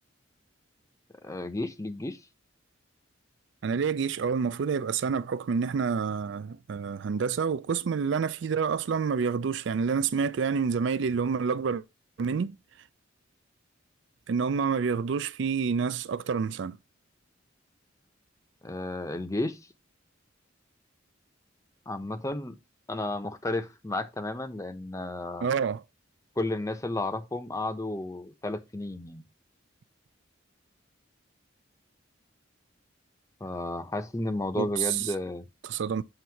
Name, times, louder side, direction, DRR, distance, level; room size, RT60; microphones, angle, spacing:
voice 1, 1.2-2.2 18.6-19.7 21.9-22.6 22.9-25.5 26.4-29.2 33.4-35.5, left 2 dB, 15° left, 0.7 m, -32 dB
voice 2, 3.6-11.8 12.2-12.6 14.3-16.8 25.4-25.8 34.6-35.1 35.6-36.0, right 6 dB, 65° right, 0.4 m, -28 dB
7.8 x 2.7 x 5.6 m
head